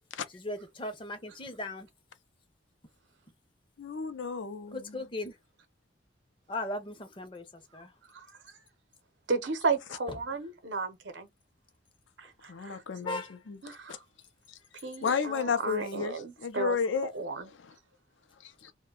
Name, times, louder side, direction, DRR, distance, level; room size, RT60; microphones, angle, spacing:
voice 1, 0.3-1.9 4.7-5.4 6.5-7.9 10.1-10.2 13.0-13.4, left 2 dB, 25° left, 0.5 m, -38 dB
voice 2, 3.8-4.8 12.5-13.6 13.9-14.0 15.0-17.1 18.4-18.7, left 6 dB, 85° left, 0.5 m, -32 dB
voice 3, 8.1-8.6 9.3-11.3 12.2-12.8 13.6-14.0 14.8-16.8 17.0-17.5, right 4 dB, 75° right, 0.7 m, -34 dB
2.5 x 2.2 x 3.6 m
head